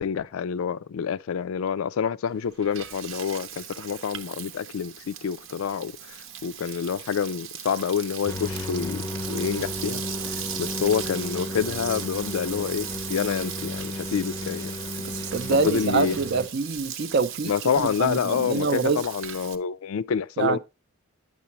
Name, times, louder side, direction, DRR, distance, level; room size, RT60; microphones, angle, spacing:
voice 1, 0.0-14.7 15.5-16.2 17.4-20.6, left 7 dB, 85° left, 0.4 m, -28 dB
Frying (food), 2.3-19.6, right 9 dB, 70° right, 0.8 m, -38 dB
sound 1, 8.3-16.5, left 2 dB, 15° left, 0.5 m, -34 dB
voice 2, 15.3-17.5 18.0-19.0 20.4-20.6, right 4 dB, 50° right, 0.5 m, -25 dB
9.4 x 6.9 x 2.9 m
head